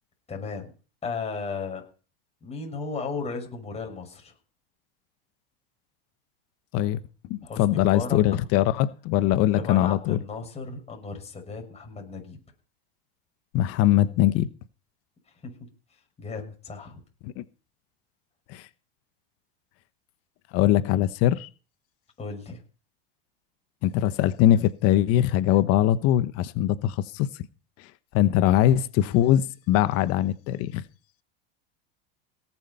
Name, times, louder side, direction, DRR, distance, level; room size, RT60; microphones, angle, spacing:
voice 1, 0.3-0.7 1.0-1.8 2.4-4.3 7.4-8.2 9.5-12.4 15.4-15.5 16.2-17.0 22.2-22.6, left 4 dB, 20° left, 6.4 m, -35 dB
voice 2, 7.3-10.2 13.5-14.5 17.2-17.4 18.5-18.6 20.5-21.5 23.8-27.3 28.1-30.8, left 12 dB, 50° left, 1.1 m, -22 dB
18.0 x 7.3 x 5.5 m
hypercardioid pair, 105°, 30 cm